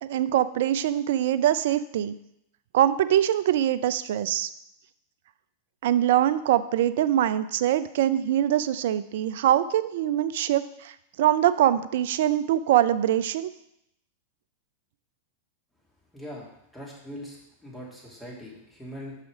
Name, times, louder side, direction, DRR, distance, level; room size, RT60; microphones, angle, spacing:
voice 1, 0.0-2.1 2.7-4.5 5.8-13.5, right 11 dB, 65° right, 14 dB, 0.4 m, -23 dB
voice 2, 16.1-19.2, equal, 5° left, -5 dB, 2.7 m, -41 dB
5.8 x 5.7 x 5.1 m, 0.79 s
hypercardioid pair, 100°, 0 cm